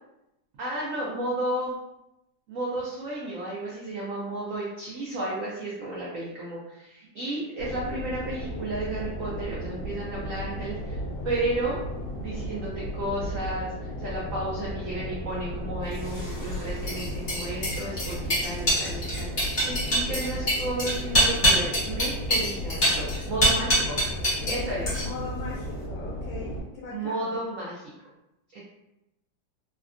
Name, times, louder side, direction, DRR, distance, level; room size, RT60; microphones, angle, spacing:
voice 1, 0.6-1.7 2.5-11.8 12.1-24.0 24.5-24.9 26.9-27.9 28.5-28.6, right 1 dB, 85° right, -5 dB, 0.7 m, -33 dB
sound 1, 7.6-26.6, equal, 70° left, 1.2 m, -35 dB
sound 2, 16.0-24.6 24.9-25.3, right 1 dB, 35° left, 0.8 m, -25 dB
voice 2, 23.4-23.9 24.4-27.3, left 4 dB, 90° left, -4 dB, 1.4 m, -39 dB
3.4 x 2.1 x 2.4 m, 0.90 s
omnidirectional pair, 2.1 m